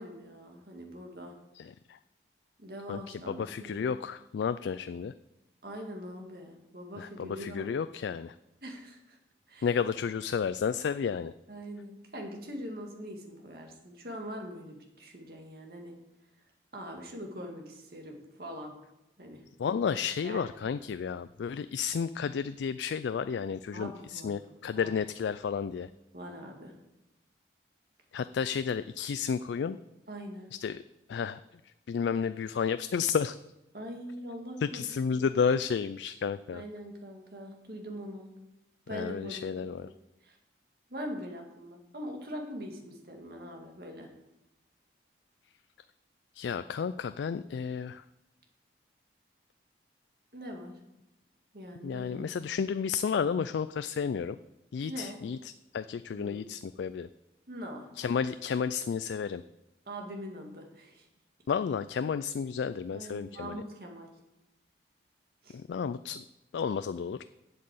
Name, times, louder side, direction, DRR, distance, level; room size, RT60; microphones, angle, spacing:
voice 1, 0.0-1.4 2.6-4.0 5.6-7.8 8.6-9.2 9.5-9.7 11.5-16.0 16.7-18.7 19.2-19.4 20.2-20.5 23.7-25.0 26.1-26.7 30.1-30.5 33.7-35.2 36.5-38.3 38.9-40.4 40.9-44.1 50.3-50.8 51.5-52.3 54.9-55.2 56.1-56.5 57.5-57.9 59.9-61.1 62.9-64.1 65.4-65.6, equal, 55° right, 1 dB, 2.1 m, -43 dB
voice 2, 2.9-5.1 7.0-8.3 9.6-11.3 19.6-25.9 28.1-29.8 30.6-30.8 31.1-31.4 31.9-33.4 34.7-36.6 38.9-39.9 46.4-48.0 51.8-54.4 54.7-55.4 55.7-57.1 58.0-59.4 61.5-63.6 65.5-66.2 66.5-67.2, left 6 dB, 75° left, 13 dB, 0.3 m, -32 dB
7.9 x 7.5 x 7.8 m, 0.92 s
head